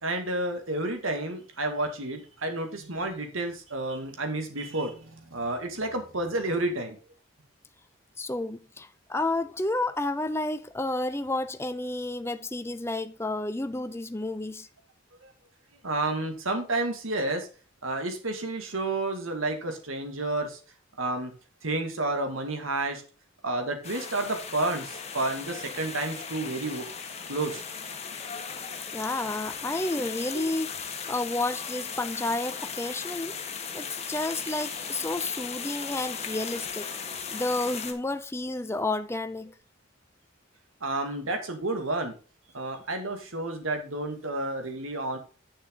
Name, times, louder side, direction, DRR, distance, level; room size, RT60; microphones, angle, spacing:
voice 1, 0.0-7.0 15.2-15.3 15.8-17.5 17.8-20.6 21.0-21.3 21.6-23.0 23.4-26.9 27.3-27.6 30.3-30.4 40.8-42.1 42.5-45.2, right 2 dB, 90° right, 2.2 m, -30 dB
voice 2, 8.2-14.7 28.9-30.7 31.1-33.3 33.7-36.9 37.3-39.5, left 2 dB, 15° left, 0.6 m, -31 dB
sound 1, 23.8-37.9, left 6 dB, 30° left, 1.5 m, -37 dB
9.6 x 7.0 x 3.8 m
head